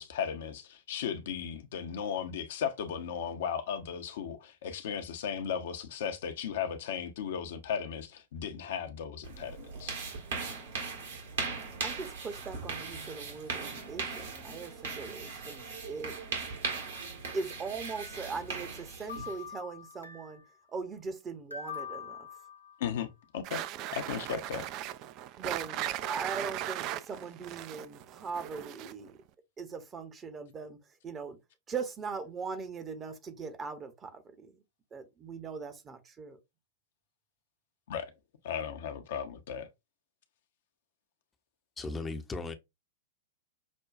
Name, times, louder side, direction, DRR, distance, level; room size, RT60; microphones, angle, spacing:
voice 1, 0.0-10.0 22.8-23.6 23.9-24.7 37.9-38.1 38.4-39.7, left 8 dB, 55° left, 0.7 m, -36 dB
sound 1, 9.2-19.5, right 4 dB, 60° right, 1.4 m, -39 dB
voice 2, 11.8-16.1 17.3-20.4 20.7-22.3 25.4-29.1 29.6-30.8 31.0-31.4 31.7-34.6 34.9-36.4, right 5 dB, 20° right, 0.8 m, -40 dB
sound 2, 18.0-18.8 19.1-20.5 21.5-23.1, left 7 dB, 85° left, 0.7 m, -45 dB
sound 3, 23.4-29.1, right 12 dB, 40° right, 0.3 m, -38 dB
voice 3, 41.8-42.5, left 3 dB, 15° left, 0.7 m, -36 dB
6.1 x 2.3 x 2.4 m
figure-of-eight pair, 100°, 0 cm